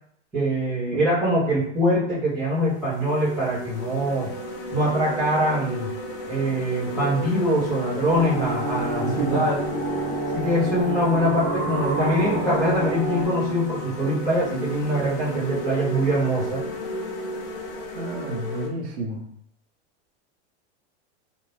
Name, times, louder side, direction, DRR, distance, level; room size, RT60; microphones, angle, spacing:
voice 1, 0.3-4.3 4.7-5.9 6.3-9.5 10.3-16.6, equal, ahead, -16 dB, 0.5 m, -23 dB
sound 1, 1.8-1.9 2.5-18.7, equal, 50° left, 0.6 m, -33 dB
sound 2, 8.1-13.2, right 2 dB, 20° left, 0.8 m, -28 dB
voice 2, 9.0-9.4 17.9-19.3, right 2 dB, 60° right, -1 dB, 0.7 m, -30 dB
2.5 x 2.1 x 3.1 m, 0.71 s
supercardioid pair, 180°, 35 cm